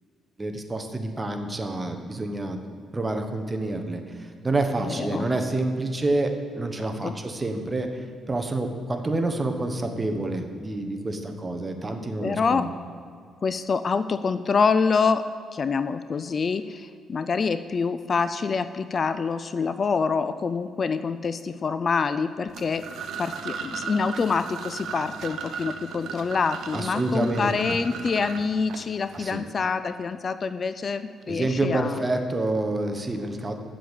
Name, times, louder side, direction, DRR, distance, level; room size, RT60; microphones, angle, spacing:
voice 1, 0.4-2.6 2.9-12.7 26.7-27.8 29.1-29.4 31.3-33.5, right 2 dB, 20° right, 5 dB, 1.1 m, -28 dB
voice 2, 4.9-5.3 7.0-7.1 12.2-12.7 13.4-15.3 15.5-22.8 23.2-32.0, left 5 dB, 40° left, 12 dB, 0.4 m, -26 dB
sound 1, 22.5-29.3, right 6 dB, 75° right, 0.8 m, -37 dB
7.6 x 7.1 x 8.2 m, 2.3 s
cardioid pair, 90°, 0 cm